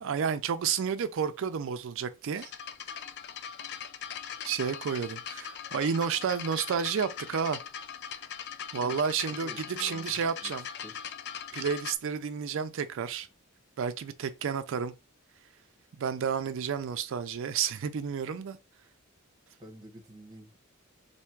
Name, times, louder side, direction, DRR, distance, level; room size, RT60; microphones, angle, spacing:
voice 1, 0.0-2.5 4.4-7.6 8.7-10.7 11.5-13.3 13.8-14.9 16.0-18.6, right 7 dB, 60° right, 0.4 m, -31 dB
sound 1, 2.4-11.9, left 8 dB, 55° left, 0.4 m, -40 dB
voice 2, 9.4-10.5 10.8-10.9 19.6-20.6, equal, 20° right, 1.0 m, -48 dB
3.4 x 2.7 x 4.4 m
head